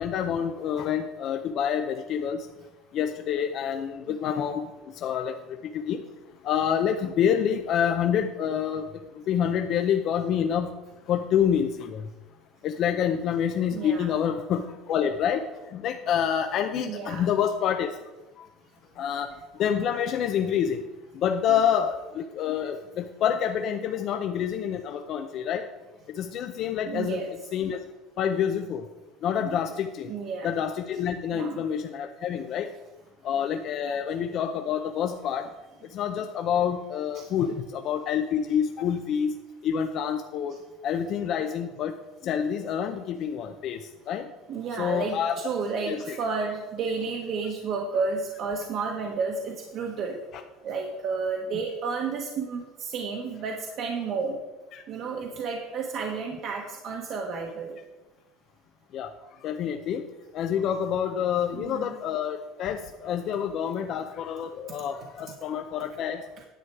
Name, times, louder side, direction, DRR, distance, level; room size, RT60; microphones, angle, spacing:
voice 1, 0.0-2.4 2.9-4.7 4.9-6.0 6.4-10.7 11.1-12.1 12.6-15.4 15.7-17.9 18.4-18.5 19.0-19.3 19.6-20.8 21.1-25.6 26.1-27.2 27.5-27.8 28.2-28.8 29.2-30.1 30.4-32.7 33.2-35.5 35.9-39.4 39.6-40.6 40.8-41.9 42.2-43.8 44.1-44.3 44.8-45.3 45.9-46.2 54.7-54.8 58.9-59.1 59.4-60.1 60.3-66.2, left 8 dB, 40° left, 6 dB, 0.6 m, -27 dB
voice 2, 13.7-14.1 16.8-17.3 26.9-27.3 29.4-29.6 30.1-30.5 31.3-31.6 33.9-34.0 37.1-37.2 44.5-50.2 50.6-54.4 54.9-57.7 61.5-61.9, right 4 dB, 45° right, 0 dB, 1.2 m, -31 dB
10.0 x 8.0 x 4.7 m, 1.1 s
cardioid pair, 165°, 0 cm